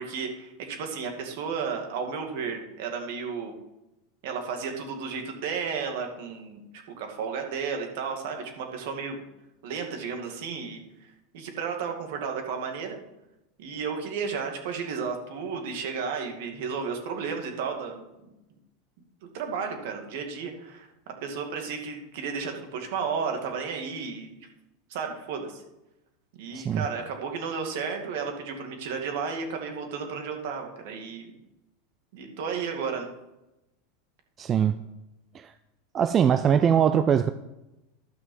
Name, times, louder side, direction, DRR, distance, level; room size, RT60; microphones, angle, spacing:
voice 1, 0.0-3.6 4.2-9.2 9.6-13.0 13.6-18.3 19.3-24.4 24.9-25.6 26.4-31.4 32.1-33.1, right 5 dB, 70° right, 4 dB, 2.2 m, -33 dB
voice 2, 26.5-26.8 34.4-34.8 35.3-35.5 35.9-37.3, right 8 dB, 25° right, 11 dB, 0.4 m, -22 dB
12.5 x 6.1 x 5.5 m, 0.94 s
supercardioid pair, 135°, 0 cm